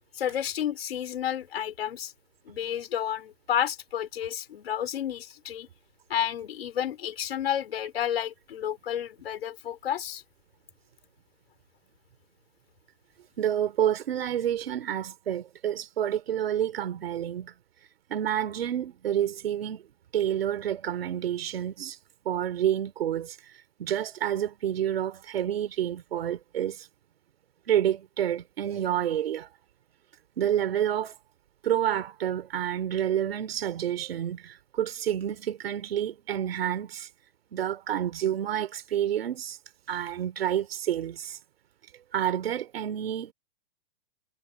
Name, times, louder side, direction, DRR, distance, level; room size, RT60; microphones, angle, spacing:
voice 1, 0.1-2.1 2.4-5.7 6.1-10.2, left 10 dB, 80° left, 4.7 m, -31 dB
voice 2, 13.4-17.5 18.1-19.8 20.1-22.0 22.2-23.4 23.8-26.9 27.7-29.5 30.4-31.1 31.6-37.1 37.5-39.6 39.9-41.4 42.1-43.3, right 10 dB, 75° right, 3.0 m, -29 dB
hypercardioid pair, 165°, 30 cm